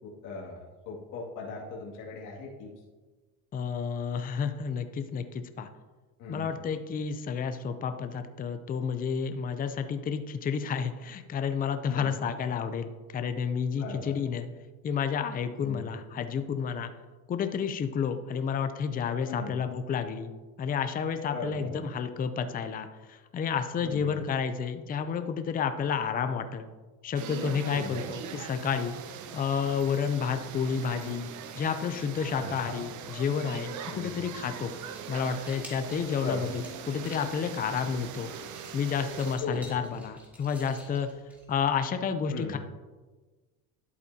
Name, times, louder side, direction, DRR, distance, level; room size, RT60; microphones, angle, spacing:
voice 1, 0.0-2.7 6.2-6.5 11.9-12.1 13.8-14.2 15.6-15.8 19.3-19.6 21.3-21.8 23.8-24.1 27.7-27.9 32.3-32.8 33.9-34.2 36.2-36.5 39.4-39.6 42.3-42.6, left 3 dB, 50° left, -4 dB, 2.4 m, -38 dB
voice 2, 3.5-5.7 6.3-14.5 14.8-16.9 17.3-20.3 20.6-26.7 27.0-28.9 29.3-31.3 31.6-34.7 35.1-36.6 36.9-38.3 38.7-41.1 41.5-42.6, left 6 dB, 20° left, 8 dB, 0.5 m, -30 dB
sound 1, 27.1-39.4, right 7 dB, 50° right, 0.8 m, -41 dB
sound 2, 34.9-41.8, equal, 5° right, 2.2 m, -52 dB
11.0 x 8.2 x 2.8 m, 1.3 s
cardioid pair, 130°, 40 cm